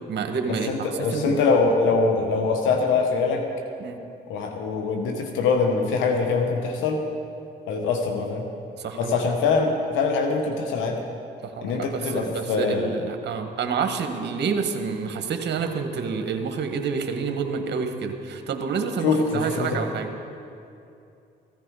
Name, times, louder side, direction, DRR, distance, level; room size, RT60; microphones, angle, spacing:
voice 1, 0.1-1.4 3.8-4.0 8.8-9.1 11.4-20.1, right 5 dB, 65° right, 6 dB, 1.3 m, -28 dB
voice 2, 0.7-3.4 4.3-7.0 7.7-8.5 9.0-11.0 11.6-12.9 19.0-19.8, left 4 dB, 85° left, 3 dB, 1.1 m, -23 dB
15.0 x 13.0 x 4.8 m, 2.6 s
supercardioid pair, 65°, 19 cm